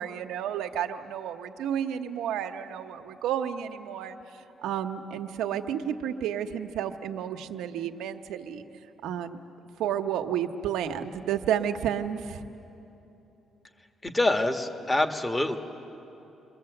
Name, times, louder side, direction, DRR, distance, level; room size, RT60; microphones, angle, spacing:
voice 1, 0.0-4.2 4.6-8.6 9.0-9.4 9.8-12.4, right 9 dB, 90° right, 6 dB, 1.1 m, -31 dB
voice 2, 14.0-15.6, left 2 dB, 15° left, 6 dB, 1.7 m, -25 dB
29.0 x 22.0 x 7.9 m, 3.0 s
cardioid pair, 90°, 0 cm